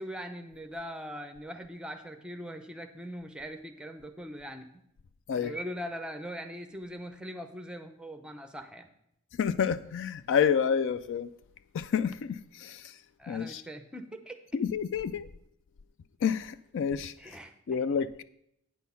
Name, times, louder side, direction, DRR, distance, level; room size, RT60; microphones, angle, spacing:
voice 1, 0.0-4.7 5.4-8.9 13.2-14.4 17.2-17.8, equal, 5° right, 0.6 m, -41 dB
voice 2, 9.4-11.3 11.7-12.9 13.3-13.6 14.5-15.3 16.2-17.1 17.7-18.2, left 7 dB, 55° left, 0.3 m, -29 dB
9.0 x 6.3 x 5.6 m
head